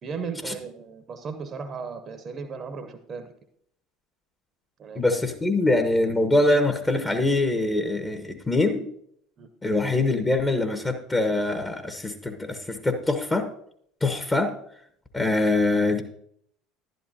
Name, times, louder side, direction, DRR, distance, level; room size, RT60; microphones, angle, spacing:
voice 1, 0.0-3.3 4.8-5.0 9.4-9.5, right 5 dB, 35° right, 9 dB, 1.0 m, -36 dB
voice 2, 4.9-8.9 9.6-13.5 14.0-14.5 15.1-16.0, left 2 dB, 15° left, 6 dB, 1.2 m, -23 dB
11.5 x 11.0 x 2.8 m, 0.68 s
figure-of-eight pair, 65°, 0 cm